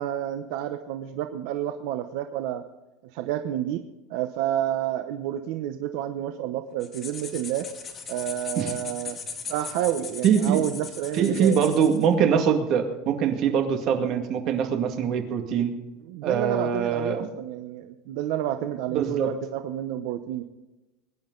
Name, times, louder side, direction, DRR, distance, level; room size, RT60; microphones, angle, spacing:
voice 1, 0.0-2.6 3.0-3.8 4.1-7.7 8.1-9.2 9.5-11.6 16.1-20.4, right 12 dB, 65° right, 7 dB, 0.9 m, -29 dB
sound 1, 6.8-12.1, left 6 dB, 25° left, 1.9 m, -38 dB
voice 2, 10.2-10.6 11.1-15.7 16.2-17.3 18.9-19.3, right 7 dB, 45° right, 4 dB, 2.1 m, -23 dB
22.5 x 11.0 x 4.0 m, 1.1 s
cardioid pair, 155°, 0 cm